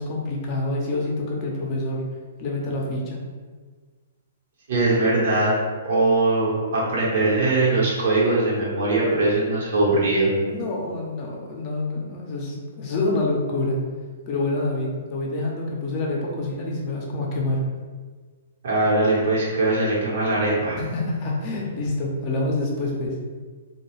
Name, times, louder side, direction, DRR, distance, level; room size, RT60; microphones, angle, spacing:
voice 1, 0.0-2.1 2.4-3.2 10.4-13.8 14.3-17.6 20.8-23.2, left 2 dB, 40° left, -2 dB, 0.6 m, -27 dB
voice 2, 4.7-5.5 5.8-10.3 18.6-20.8, right 2 dB, 65° right, -6 dB, 1.0 m, -21 dB
2.3 x 2.2 x 3.1 m, 1.5 s
hypercardioid pair, 130°, 0 cm